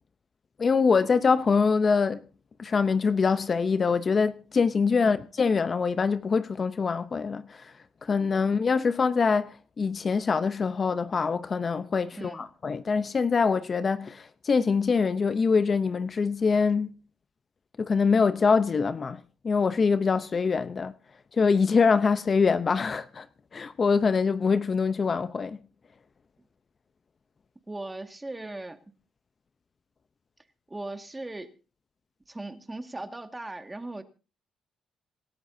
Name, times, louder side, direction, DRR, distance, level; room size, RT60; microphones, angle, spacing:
voice 1, 0.6-2.2 2.6-7.7 8.0-16.9 17.8-19.2 19.4-20.9 21.4-23.3 23.5-25.6, left 5 dB, 40° left, 0.8 m, -24 dB
voice 2, 12.1-12.4 27.7-28.8 30.7-31.5 32.3-34.0, right 2 dB, 15° right, 2.0 m, -38 dB
27.0 x 11.5 x 2.8 m
cardioid pair, 90°, 0 cm